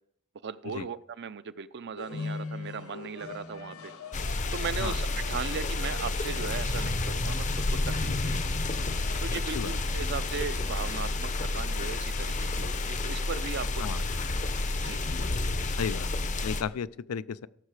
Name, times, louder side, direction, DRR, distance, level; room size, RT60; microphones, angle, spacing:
voice 1, 0.4-3.9 4.5-7.4 8.0-8.5 9.2-13.9 14.8-15.0, right 6 dB, 50° right, 0.5 m, -37 dB
sound 1, 2.0-12.2, left 3 dB, 70° left, 0.9 m, -44 dB
sound 2, 4.1-16.6, left 2 dB, 35° left, 0.7 m, -30 dB
voice 2, 15.8-16.1 16.4-17.5, left 6 dB, 85° left, 0.4 m, -33 dB
16.0 x 6.6 x 4.8 m
head